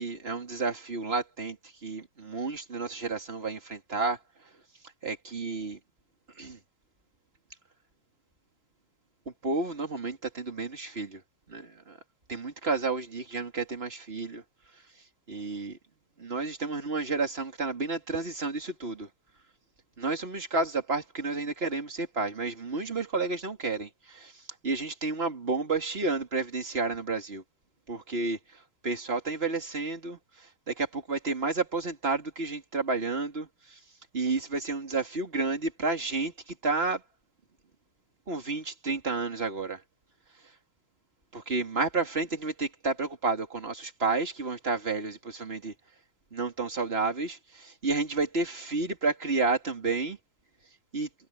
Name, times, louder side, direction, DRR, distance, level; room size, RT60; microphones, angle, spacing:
voice 1, 0.0-4.2 5.0-5.8 6.4-6.6 9.4-11.2 11.5-12.0 12.3-14.4 15.3-15.8 16.2-19.1 20.0-27.4 27.9-33.8 34.1-37.0 38.3-39.8 41.3-45.7 46.3-50.2 50.9-51.1, right 3 dB, 25° right, 3.0 m, -31 dB
omnidirectional pair, 2.3 m